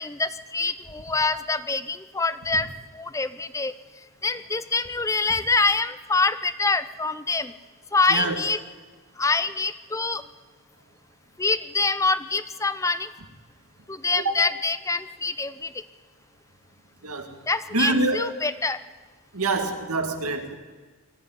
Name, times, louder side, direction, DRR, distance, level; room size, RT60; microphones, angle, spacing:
voice 1, 0.0-2.7 2.9-3.7 4.2-7.5 7.9-8.6 9.2-10.2 11.4-13.1 13.9-15.7 17.5-18.8, left 3 dB, 15° left, 14 dB, 0.5 m, -25 dB
voice 2, 17.7-18.3 19.3-20.6, right 2 dB, 85° right, 6 dB, 2.3 m, -25 dB
21.0 x 14.0 x 9.5 m, 1.4 s
head